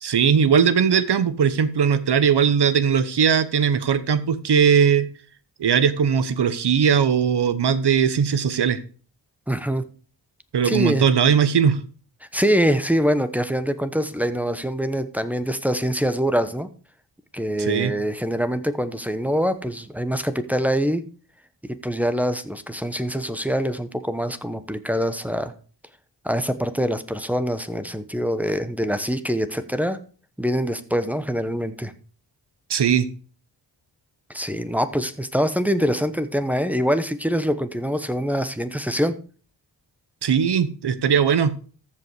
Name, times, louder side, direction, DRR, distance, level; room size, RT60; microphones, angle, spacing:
voice 1, 0.0-5.1 5.6-8.8 10.5-11.8 17.6-17.9 32.7-33.1 40.2-41.6, right 7 dB, 75° right, 13 dB, 1.0 m, -19 dB
voice 2, 9.5-9.9 10.6-11.0 12.3-16.7 17.3-21.0 21.8-25.5 26.2-30.0 30.4-31.9 34.3-39.2, equal, 5° right, 10 dB, 1.0 m, -24 dB
14.0 x 5.5 x 4.8 m, 0.40 s
wide cardioid pair, 80°, 41 cm